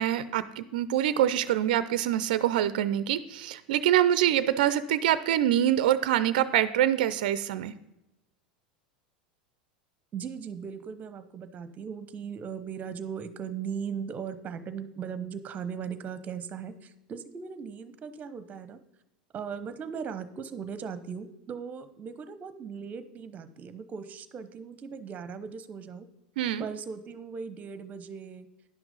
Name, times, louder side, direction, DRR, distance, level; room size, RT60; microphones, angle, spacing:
voice 1, 0.0-7.7 26.4-26.7, right 11 dB, 70° right, 15 dB, 0.5 m, -25 dB
voice 2, 10.1-18.8 19.3-26.1 26.6-28.5, right 6 dB, 35° right, 13 dB, 0.9 m, -38 dB
10.5 x 6.1 x 5.4 m, 0.93 s
hypercardioid pair, 90°, 5 cm